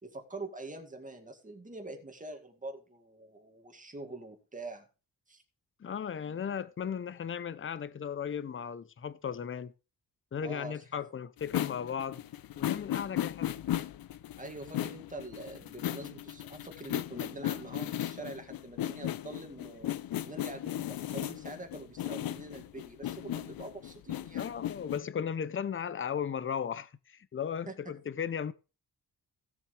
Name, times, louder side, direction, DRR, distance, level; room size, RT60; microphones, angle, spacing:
voice 1, 0.0-4.9 5.3-5.4 10.4-11.0 13.1-13.3 14.4-20.0 20.2-24.4 27.7-27.8, right 2 dB, 20° right, 2.1 m, -45 dB
voice 2, 5.8-9.7 10.3-12.2 12.6-13.6 24.3-28.5, left 7 dB, 35° left, 0.7 m, -36 dB
sound 1, 11.4-25.0, left 12 dB, 70° left, 0.6 m, -36 dB
16.5 x 7.2 x 3.3 m
wide cardioid pair, 120°, 36 cm